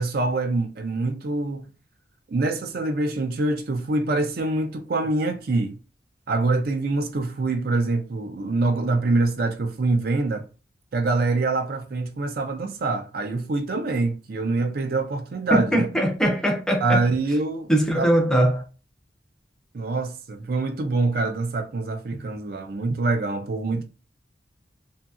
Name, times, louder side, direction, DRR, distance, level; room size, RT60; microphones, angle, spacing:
voice 1, 0.0-1.7 2.3-5.8 6.3-10.5 10.9-15.9 16.8-17.7 18.0-18.1 19.7-23.8, right 3 dB, 55° right, 0.4 m, -25 dB
voice 2, 15.5-17.0 17.7-18.6, right 1 dB, 5° left, 0.5 m, -21 dB
2.7 x 2.7 x 2.3 m
head